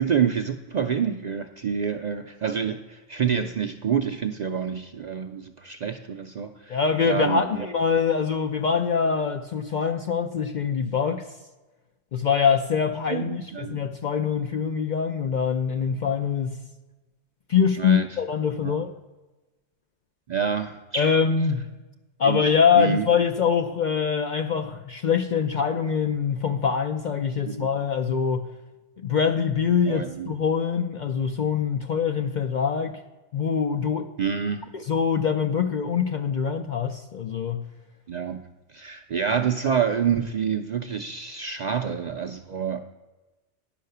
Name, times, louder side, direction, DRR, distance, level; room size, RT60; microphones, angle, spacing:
voice 1, 0.0-6.8 7.0-7.7 13.1-13.8 17.8-18.1 18.6-18.8 20.3-21.2 22.2-22.4 22.8-23.1 27.5-27.7 29.9-30.3 34.2-34.6 38.1-38.4 38.7-42.8, right 7 dB, 55° right, 6 dB, 0.5 m, -27 dB
voice 2, 6.7-11.3 12.1-16.6 17.5-18.9 21.0-21.7 22.2-28.5 29.0-33.0 33.3-34.1 34.7-37.7, left 6 dB, 55° left, 6 dB, 0.5 m, -24 dB
10.5 x 5.7 x 6.7 m, 1.1 s
omnidirectional pair, 1.2 m